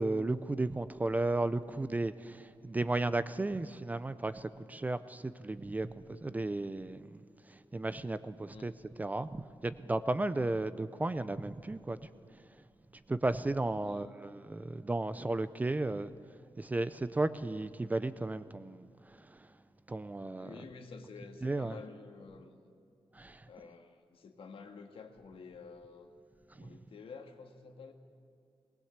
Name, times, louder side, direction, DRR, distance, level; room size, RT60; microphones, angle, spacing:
voice 1, 0.0-7.2 7.7-8.7 9.0-12.0 13.1-16.1 16.6-18.9 19.9-20.5 21.4-21.8 23.1-23.4, right 2 dB, 15° right, 14 dB, 0.5 m, -34 dB
voice 2, 13.8-14.1 20.4-22.5 23.5-26.1 26.6-27.9, left 4 dB, 80° left, 5 dB, 1.7 m, -50 dB
20.0 x 19.5 x 8.1 m, 2.4 s
wide cardioid pair, 175°, 9 cm